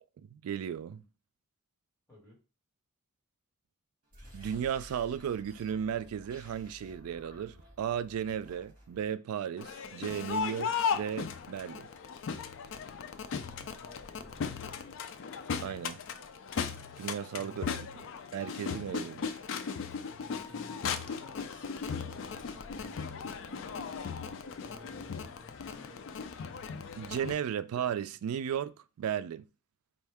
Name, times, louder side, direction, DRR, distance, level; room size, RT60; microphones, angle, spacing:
voice 1, 0.2-1.0 4.3-11.9 15.6-16.0 17.0-17.9 18.3-19.4 27.0-29.5, right 8 dB, 75° right, 0.3 m, -35 dB
voice 2, 2.1-2.4 13.3-14.6 17.3-17.8 20.0-23.6 24.6-26.2, left 1 dB, 15° left, 1.9 m, -56 dB
sound 1, 4.0-9.1, equal, 40° right, 2.0 m, -53 dB
Crowd, 9.6-27.3, left 6 dB, 60° left, 0.4 m, -37 dB
4.4 x 2.7 x 3.4 m
head